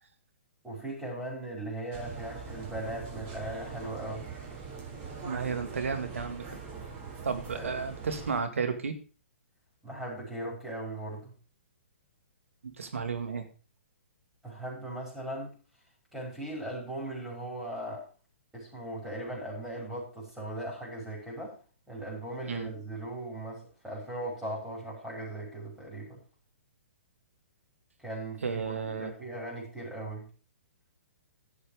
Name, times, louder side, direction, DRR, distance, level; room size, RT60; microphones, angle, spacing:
voice 1, 0.6-4.3 7.5-7.8 9.8-11.3 14.4-15.5 16.1-18.1 18.5-21.6 21.9-26.2 28.0-28.6 29.0-30.3, right 1 dB, 5° right, -4 dB, 6.0 m, -38 dB
sound 1, 1.9-8.4, right 5 dB, 35° right, 3.9 m, -42 dB
voice 2, 5.2-6.5 7.2-8.9 12.8-13.5 22.5-22.7 28.4-29.1, right 5 dB, 85° right, 8 dB, 2.2 m, -32 dB
11.5 x 7.3 x 5.2 m, 0.37 s
hypercardioid pair, 135°, 7 cm